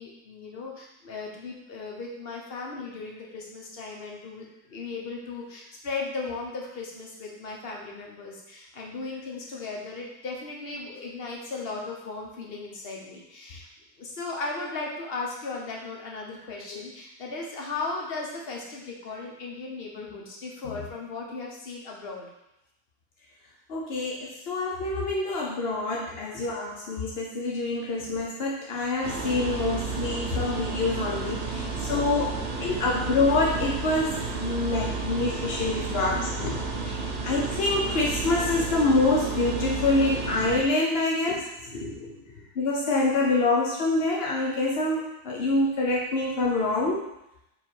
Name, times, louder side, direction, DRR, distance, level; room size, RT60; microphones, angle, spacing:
voice 1, 0.0-13.7 14.0-22.3 26.3-26.4 35.2-35.6 36.0-36.6 41.3-42.5, left 3 dB, 40° left, -1 dB, 0.9 m, -37 dB
voice 2, 23.7-36.5 37.2-41.4 42.6-47.0, left 2 dB, 65° left, -3 dB, 0.6 m, -26 dB
sound 1, 29.0-40.6, right 4 dB, 55° right, 0.8 m, -32 dB
4.9 x 4.3 x 4.5 m, 0.86 s
omnidirectional pair, 2.1 m